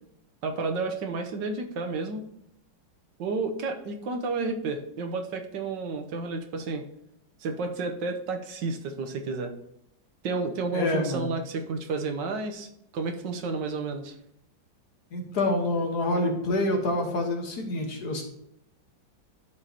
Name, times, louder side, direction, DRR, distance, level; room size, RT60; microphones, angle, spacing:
voice 1, 0.4-2.2 3.2-6.8 7.4-9.5 10.2-12.7 12.9-14.1, right 3 dB, 75° right, 5 dB, 1.5 m, -31 dB
voice 2, 10.7-11.3 15.1-18.2, left 2 dB, 60° left, 2 dB, 1.8 m, -27 dB
12.5 x 4.9 x 2.9 m, 0.78 s
omnidirectional pair, 2.0 m